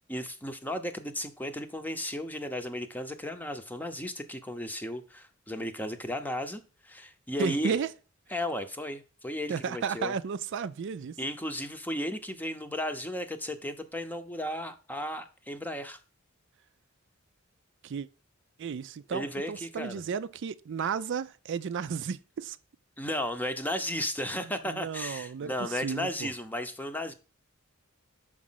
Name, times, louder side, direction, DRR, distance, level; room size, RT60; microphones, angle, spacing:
voice 1, 0.1-7.8 8.3-10.1 11.2-16.0 19.1-20.0 23.0-27.1, left 1 dB, 10° left, 0.7 m, -34 dB
voice 2, 7.4-7.9 9.5-11.2 17.8-18.1 18.6-22.6 24.4-26.3, right 6 dB, 60° right, 0.4 m, -33 dB
6.2 x 4.9 x 5.6 m
head